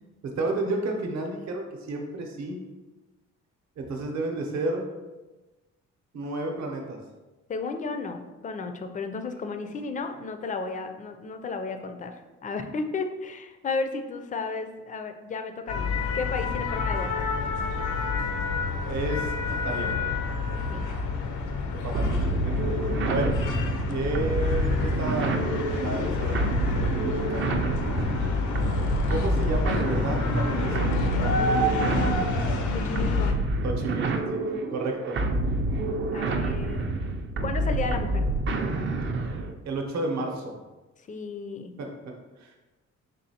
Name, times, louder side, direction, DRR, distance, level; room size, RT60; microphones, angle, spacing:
voice 1, 0.2-2.6 3.8-4.9 6.1-7.0 18.9-19.3 19.6-19.9 21.7-22.5 22.8-23.4 23.9-25.4 25.7-26.4 26.7-27.5 29.1-31.4 33.6-35.2 39.6-40.5 41.8-42.5, right 2 dB, 65° right, 2 dB, 0.8 m, -31 dB
voice 2, 7.5-17.3 20.7-20.9 32.7-33.3 36.1-36.9 37.4-38.3 41.1-41.7, left 4 dB, 25° left, 7 dB, 0.4 m, -33 dB
sound 1, 15.7-33.3, left 3 dB, 80° left, 0.6 m, -28 dB
sound 2, 21.9-39.6, right 2 dB, 40° right, 0.4 m, -28 dB
4.0 x 3.1 x 2.8 m, 1.2 s
cardioid pair, 90°, 30 cm